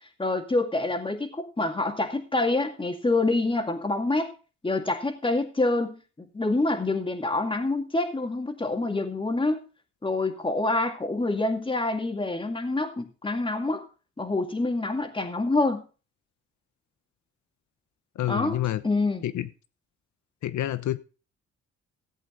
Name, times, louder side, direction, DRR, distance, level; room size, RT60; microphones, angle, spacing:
voice 1, 0.2-4.3 4.6-9.6 10.0-13.9 14.2-15.8 18.3-19.2, left 2 dB, 15° left, 2.1 m, -26 dB
voice 2, 18.2-18.8 19.2-19.5 20.4-21.0, left 13 dB, 70° left, 1.0 m, -28 dB
15.0 x 8.2 x 3.9 m
cardioid pair, 90°, 30 cm